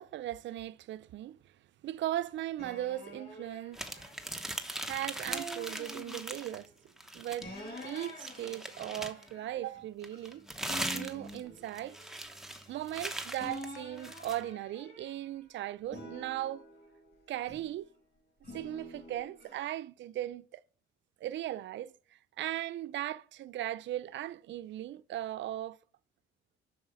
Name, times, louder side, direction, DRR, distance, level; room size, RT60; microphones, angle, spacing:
voice 1, 0.0-1.5 1.8-4.1 4.8-6.7 7.1-7.5 7.8-10.5 10.9-12.0 12.7-16.6 17.3-17.9 18.5-20.6 21.2-25.8, right 13 dB, 70° right, 0.5 m, -38 dB
sound 1, 2.6-4.7 5.3-6.6 7.4-10.4 10.7-13.0 13.4-15.4 15.9-17.8 18.4-19.6, equal, 50° left, 5.2 m, -47 dB
sound 2, 3.7-6.7 7.0-9.3 10.0-14.4, right 1 dB, ahead, 1.0 m, -40 dB
7.2 x 6.4 x 5.3 m
cardioid pair, 90°, 20 cm